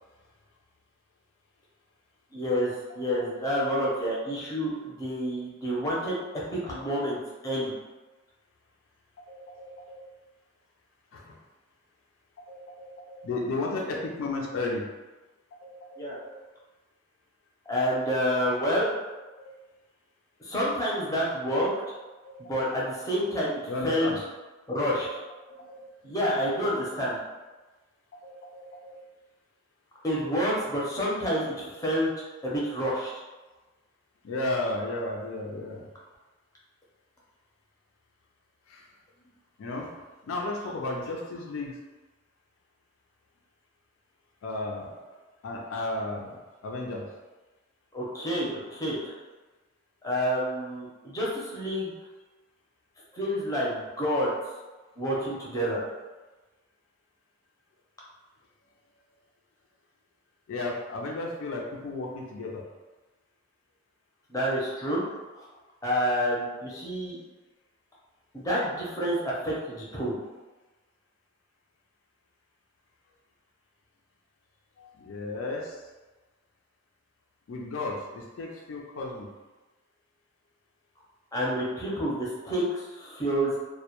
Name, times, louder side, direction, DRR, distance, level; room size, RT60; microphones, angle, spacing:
voice 1, 2.3-6.2 6.5-7.2 7.4-7.7 16.0-16.2 17.7-18.9 20.4-21.7 22.4-24.1 24.7-25.2 26.0-27.2 30.0-32.1 32.4-33.2 47.9-49.1 50.0-51.9 53.1-54.3 55.0-55.8 64.3-65.0 65.8-67.2 68.3-70.2 81.3-83.5, equal, 15° left, -6 dB, 0.5 m, -28 dB
voice 2, 9.3-10.1 11.1-11.4 12.5-14.8 15.6-16.4 19.4-19.5 22.2-22.4 23.7-24.2 25.5-25.9 28.2-29.0 34.2-35.9 38.7-38.9 39.6-41.7 44.4-45.0 45.4-47.1 60.5-62.6 74.8-75.8 77.5-79.3, left 2 dB, 70° left, -1 dB, 0.4 m, -34 dB
2.1 x 2.1 x 2.8 m, 1.2 s
head